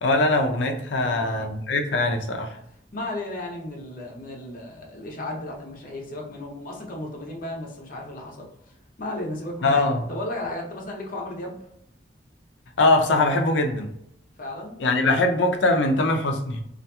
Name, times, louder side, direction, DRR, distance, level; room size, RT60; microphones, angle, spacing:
voice 1, 0.0-2.6 9.6-10.0 12.8-13.9 14.8-16.6, left 2 dB, 85° left, 0.5 m, -22 dB
voice 2, 1.0-1.6 2.9-8.5 9.0-11.6 14.4-15.2, left 1 dB, 50° left, 0.8 m, -34 dB
2.8 x 2.5 x 2.3 m
head